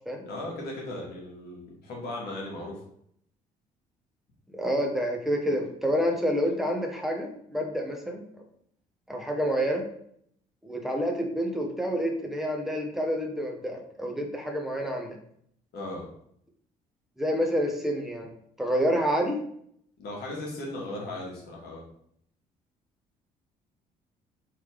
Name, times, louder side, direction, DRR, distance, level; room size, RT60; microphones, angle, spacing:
voice 1, 0.2-2.8 15.7-16.1 20.0-21.8, left 1 dB, 55° left, -2 dB, 1.3 m, -37 dB
voice 2, 4.5-8.2 9.1-9.9 10.6-15.2 17.2-18.3 18.6-19.4, equal, ahead, 2 dB, 0.9 m, -28 dB
3.4 x 3.1 x 3.2 m, 0.68 s
figure-of-eight pair, 45°, 19 cm